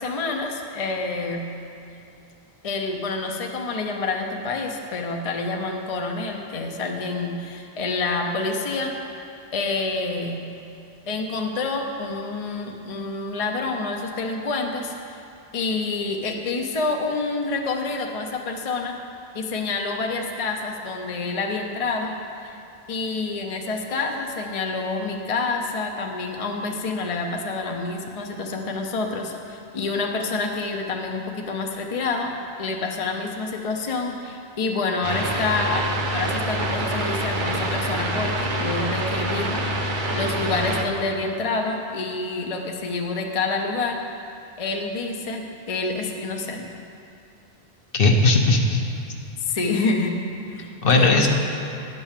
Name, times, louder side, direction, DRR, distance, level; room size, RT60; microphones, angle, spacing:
voice 1, 0.0-1.4 2.6-10.5 11.1-15.2 15.5-19.0 19.3-22.6 22.9-32.3 32.6-35.8 36.1-39.7 40.1-44.0 44.6-46.7 49.4-50.2 50.5-51.2, left 3 dB, 40° left, 2 dB, 0.7 m, -27 dB
sound 1, 35.0-40.8, right 1 dB, 50° right, 0.9 m, -26 dB
voice 2, 47.9-48.8 50.8-51.3, left 2 dB, 60° left, 2 dB, 1.0 m, -17 dB
10.5 x 5.3 x 7.2 m, 2.7 s
omnidirectional pair, 1.1 m